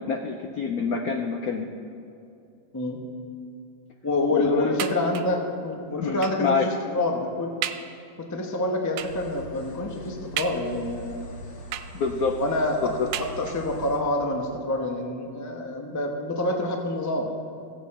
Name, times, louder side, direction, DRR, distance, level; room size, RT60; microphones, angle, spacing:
voice 1, 0.0-1.7 4.3-4.7 6.0-6.7 11.9-12.4 12.8-13.1, left 5 dB, 75° left, 3 dB, 0.8 m, -26 dB
voice 2, 4.0-7.5 8.2-11.2 12.4-17.3, left 1 dB, 25° left, 2 dB, 0.4 m, -27 dB
sound 1, 4.8-5.5 6.2-6.5 7.1-7.2 7.6-8.0 9.0-9.3 10.4-11.0 11.7-12.3 13.1-13.8 14.6-14.7 15.0-15.1, right 11 dB, 90° right, 1.5 m, -34 dB
sound 2, 9.0-14.0, left 1 dB, 45° left, 1.4 m, -42 dB
16.0 x 8.3 x 4.2 m, 2.6 s
omnidirectional pair, 2.3 m